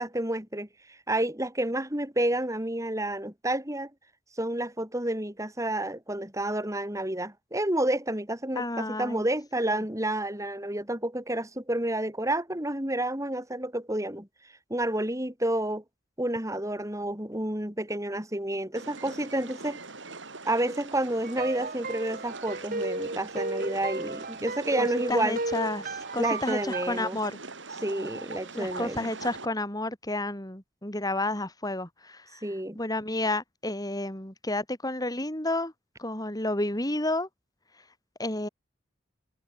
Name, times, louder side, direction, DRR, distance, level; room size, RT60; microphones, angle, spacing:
voice 1, 0.0-3.9 4.3-14.3 14.7-15.8 16.2-19.8 20.4-25.4 26.2-27.2 27.8-29.1 32.4-32.8, right 1 dB, 15° right, 5.2 m, -30 dB
voice 2, 8.6-9.2 9.7-9.8 24.8-27.4 28.5-32.5 32.7-35.7 36.0-37.3 38.2-38.5, left 2 dB, 20° left, 6.0 m, -31 dB
sound 1, 18.7-29.5, right 3 dB, 65° right, 4.7 m, -42 dB
sound 2, 21.2-27.0, right 2 dB, 45° right, 4.0 m, -34 dB
head